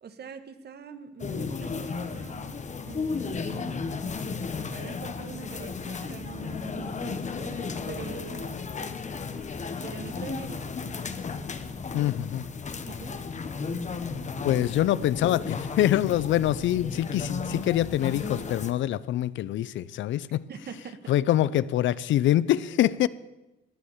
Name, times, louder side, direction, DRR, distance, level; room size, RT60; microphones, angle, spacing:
voice 1, 0.0-3.8 4.6-8.6 9.8-11.1 12.8-13.2 20.5-21.0, right 6 dB, 55° right, 1.5 m, -43 dB
sound 1, 1.2-18.7, left 5 dB, 35° left, 1.2 m, -34 dB
voice 2, 11.9-12.4 14.4-20.4 21.1-23.1, left 13 dB, 75° left, 0.5 m, -25 dB
17.5 x 9.7 x 7.2 m
cardioid pair, 90°, 20 cm